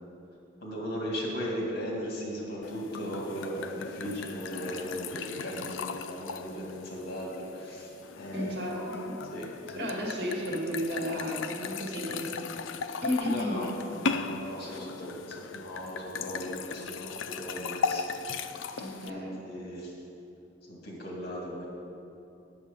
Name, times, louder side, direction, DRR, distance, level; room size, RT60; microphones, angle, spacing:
voice 1, 0.6-8.7 9.3-9.8 13.3-13.7 14.0-18.0 19.1-19.2 19.5-19.9 20.7-21.6, equal, 55° left, -2 dB, 2.1 m, -37 dB
sound 1, 2.6-19.1, left 5 dB, 75° left, 0.4 m, -37 dB
voice 2, 8.3-9.2 9.8-12.7 13.0-13.7 18.8-19.4, equal, 60° right, -3 dB, 2.1 m, -33 dB
9.5 x 7.4 x 5.3 m, 2.7 s
head